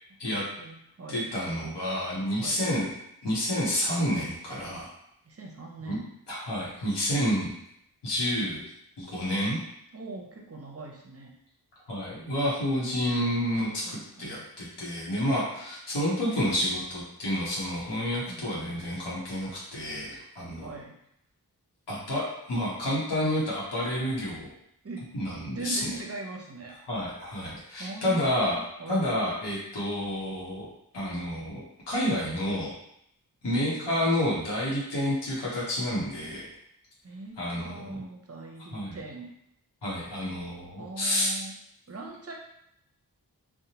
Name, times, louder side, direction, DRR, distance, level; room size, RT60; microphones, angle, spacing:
voice 1, 0.6-1.3 2.4-2.7 5.2-6.1 9.9-11.3 13.8-14.4 18.3-18.9 20.6-21.0 24.8-25.1 25.5-26.7 27.8-29.2 33.4-33.9 37.0-39.3 40.8-41.5 41.9-42.3, right 3 dB, 35° right, 0 dB, 0.6 m, -41 dB
voice 2, 1.1-2.9 3.2-4.9 5.8-6.0 6.3-7.5 8.0-8.7 9.0-9.6 11.9-20.8 21.9-24.5 25.1-25.8 26.9-28.6 28.9-30.7 30.9-31.6 31.9-32.7 33.4-36.5 37.4-38.0 38.7-39.0 39.8-41.3, equal, 85° left, -7 dB, 0.8 m, -29 dB
2.7 x 2.1 x 2.8 m, 0.75 s
cardioid pair, 45°, 40 cm